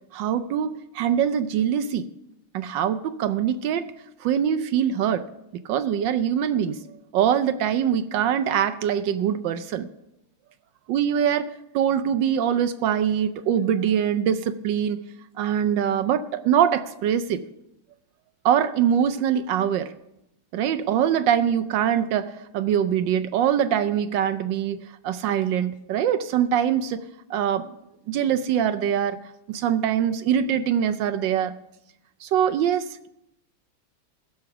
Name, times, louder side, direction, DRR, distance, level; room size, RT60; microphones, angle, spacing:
voice 1, 0.1-2.0 2.5-3.9 4.2-5.2 5.7-6.8 7.1-9.9 10.9-15.0 15.4-17.4 18.4-19.9 20.5-24.8 25.0-27.0 27.3-27.7 28.1-29.2 29.5-31.5 32.2-33.1, right 9 dB, 75° right, 11 dB, 1.1 m, -23 dB
15.5 x 6.6 x 5.8 m, 0.84 s
omnidirectional pair, 2.3 m